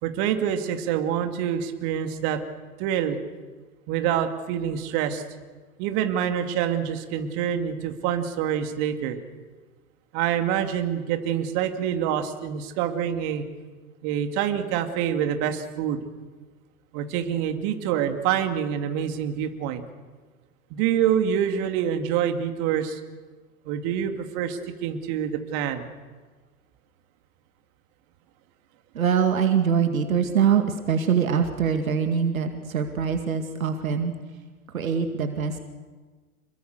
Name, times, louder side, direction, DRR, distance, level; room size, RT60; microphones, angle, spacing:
voice 1, 0.0-2.4 2.8-3.2 3.9-5.2 5.8-9.2 10.1-13.4 14.0-16.0 16.9-19.8 20.7-23.0 23.7-25.9, right 9 dB, 40° right, 6 dB, 2.5 m, -26 dB
voice 2, 28.9-34.1 34.7-35.6, right 7 dB, 70° right, 7 dB, 2.2 m, -23 dB
27.0 x 22.0 x 6.7 m, 1.4 s
figure-of-eight pair, 100°, 43 cm